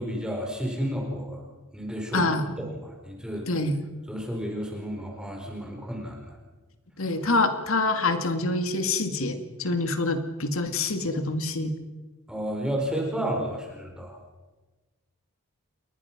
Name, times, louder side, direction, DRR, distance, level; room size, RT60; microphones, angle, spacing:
voice 1, 0.0-1.4 1.7-2.3 2.6-3.5 4.1-6.4 12.3-14.2, equal, 5° right, 0 dB, 4.6 m, -32 dB
voice 2, 2.1-2.4 3.5-3.8 7.0-11.7, left 2 dB, 65° left, 7 dB, 2.4 m, -26 dB
29.5 x 23.0 x 6.1 m, 1.2 s
head